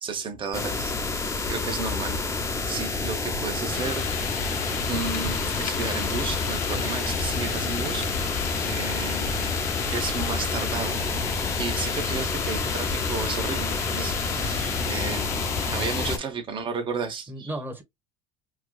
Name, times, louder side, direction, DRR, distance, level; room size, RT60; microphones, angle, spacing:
voice 1, 0.0-0.9 1.5-4.0 4.9-8.0 8.6-9.4 9.8-11.0 11.6-15.4 15.7-17.5, right 5 dB, 30° right, 1.3 m, -33 dB
sound 1, 0.5-16.2, left 3 dB, 20° left, 0.8 m, -29 dB
sound 2, 3.7-16.2, left 8 dB, 60° left, 0.5 m, -33 dB
voice 2, 14.3-16.0 17.3-17.8, right 1 dB, 15° right, 1.4 m, -38 dB
4.7 x 2.3 x 2.3 m
supercardioid pair, 110°, 16 cm